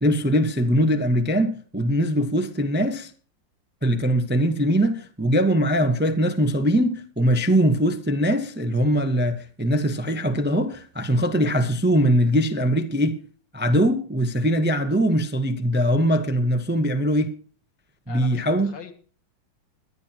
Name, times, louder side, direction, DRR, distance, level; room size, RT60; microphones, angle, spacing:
voice 1, 0.0-3.1 3.8-13.2 13.5-17.4 18.1-18.7, equal, 10° right, 0.7 m, -21 dB
voice 2, 18.1-18.9, left 6 dB, 70° left, 2.8 m, -41 dB
22.0 x 11.0 x 2.9 m
omnidirectional pair, 2.1 m